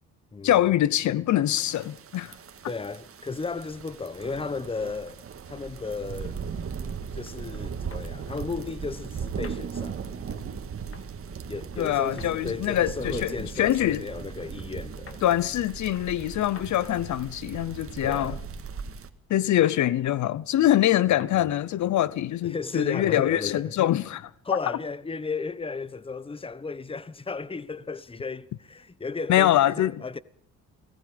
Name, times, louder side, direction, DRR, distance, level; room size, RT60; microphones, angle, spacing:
voice 1, 0.4-2.4 11.8-14.0 15.2-18.4 19.3-24.6 29.3-30.0, left 12 dB, 70° left, 0.8 m, -24 dB
sound 1, 1.5-19.1, right 6 dB, 50° right, 1.9 m, -38 dB
voice 2, 2.6-6.4 7.1-10.6 11.5-15.2 18.0-18.4 21.3-21.5 22.4-23.7 24.4-30.2, left 4 dB, 20° left, 1.0 m, -35 dB
sound 2, 7.9-8.1 9.4-9.6 10.9-11.1 12.2-12.3 13.6-13.8 15.1-15.2 16.6-16.7 18.1-18.3 19.6-19.8 21.2-21.4, left 6 dB, 45° left, 2.5 m, -45 dB
28.5 x 18.5 x 5.1 m
cardioid pair, 90°, 30 cm